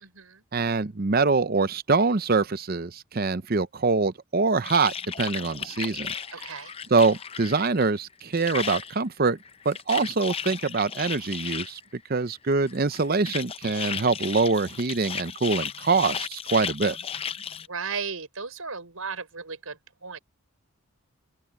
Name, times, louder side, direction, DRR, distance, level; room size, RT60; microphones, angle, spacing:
voice 1, 0.0-0.4 6.3-6.7 17.7-20.2, right 5 dB, 80° right, 4.9 m, -35 dB
voice 2, 0.5-6.1 6.9-9.4 9.6-11.8 12.1-17.0, right 4 dB, 45° right, 0.6 m, -24 dB
sound 1, 4.6-7.9 8.1-9.0 9.4-11.8 12.7-17.7, left 7 dB, 25° left, 0.6 m, -35 dB
open air
head